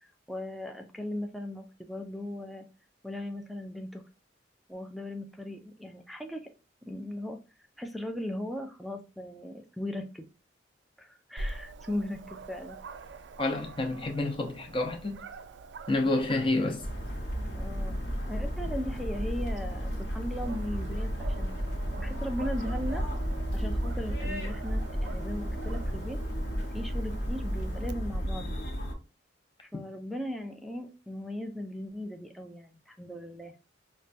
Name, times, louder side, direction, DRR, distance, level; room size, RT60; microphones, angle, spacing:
voice 1, 0.0-2.7 3.0-4.0 4.7-6.5 6.9-7.4 7.8-10.2 11.0-12.8 17.5-18.0 18.3-23.0 23.5-26.2 26.7-28.6 29.6-33.5, left 1 dB, ahead, 0.4 m, -38 dB
Dog, 11.4-27.9, right 3 dB, 75° right, 0.4 m, -46 dB
voice 2, 13.4-15.2 15.9-16.9, left 2 dB, 30° left, 0.7 m, -29 dB
sound 1, 16.8-28.9, equal, 60° left, 1.1 m, -33 dB
5.2 x 2.2 x 2.5 m
head